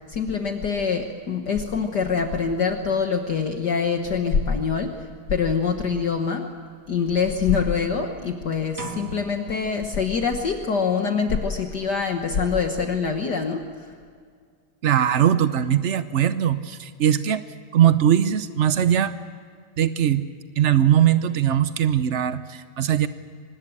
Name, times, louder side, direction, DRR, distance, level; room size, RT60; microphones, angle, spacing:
voice 1, 0.1-6.5 6.9-13.7, left 5 dB, 55° left, 4 dB, 1.8 m, -24 dB
sound 1, 8.8-10.7, right 4 dB, 15° right, 0.7 m, -40 dB
voice 2, 14.8-17.4 17.7-19.1 19.8-20.2 20.6-23.1, right 10 dB, 85° right, 12 dB, 0.6 m, -20 dB
25.0 x 20.0 x 8.7 m, 2.1 s
omnidirectional pair, 2.4 m